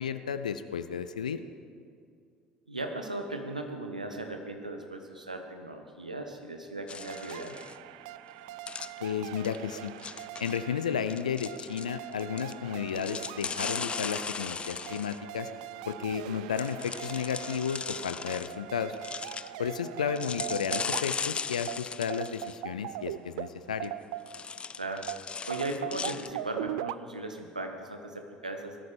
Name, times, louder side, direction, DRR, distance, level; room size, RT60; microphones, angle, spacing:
voice 1, 0.0-1.4 9.0-9.9 10.4-15.5 15.9-19.0 19.6-23.9, left 7 dB, 80° left, 11 dB, 0.5 m, -33 dB
voice 2, 2.7-7.6 24.7-25.1 25.5-28.8, right 2 dB, 90° right, 5 dB, 1.1 m, -37 dB
sound 1, 6.9-7.8 8.7-9.0 9.4-9.6 9.9-10.6 11.1-12.5 12.9-15.2 16.5-18.6 18.9-19.5 20.1-22.6 23.8-23.9 24.3-26.3, left 6 dB, 25° left, 0.5 m, -37 dB
sound 2, 7.0-24.6 25.1-27.0, right 15 dB, 65° right, 0.3 m, -41 dB
19.5 x 13.5 x 5.1 m, 2.3 s
figure-of-eight pair, 60°, 4 cm